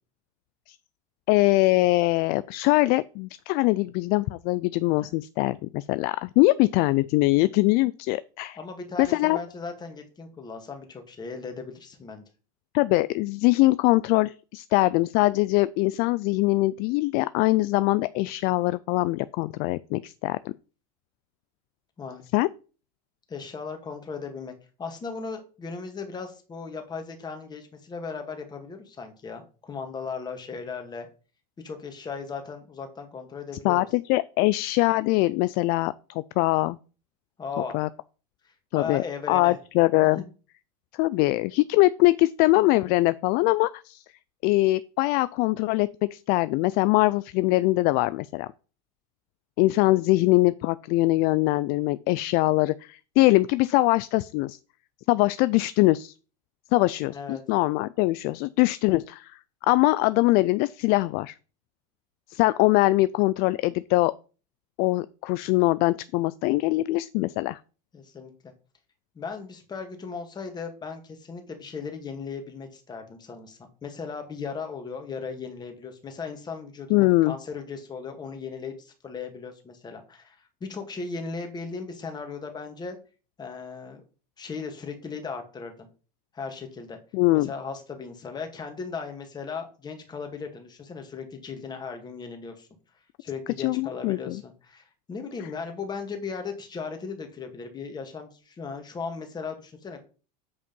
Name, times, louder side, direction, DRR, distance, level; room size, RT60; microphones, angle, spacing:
voice 1, 1.3-8.6 9.0-9.4 12.7-20.5 22.3-22.5 33.6-36.8 37.7-37.9 38.7-40.2 40.9-44.0 44.4-48.5 49.6-54.6 55.1-56.1 56.7-59.3 59.7-61.3 62.3-64.1 64.8-67.6 76.9-77.4 87.1-87.5 93.6-94.4, left 20 dB, 50° left, 0.4 m, -22 dB
voice 2, 8.6-12.2 22.0-22.2 23.3-24.5 24.8-31.1 31.6-33.9 37.4-37.8 38.7-39.6 40.2-40.3 57.1-57.4 67.9-68.5 69.2-83.0 83.4-84.0 84.4-85.9 86.3-87.0 87.3-92.7 93.2-100.0, left 5 dB, 20° left, 2.1 m, -37 dB
8.3 x 5.1 x 5.4 m
supercardioid pair, 140°, 21 cm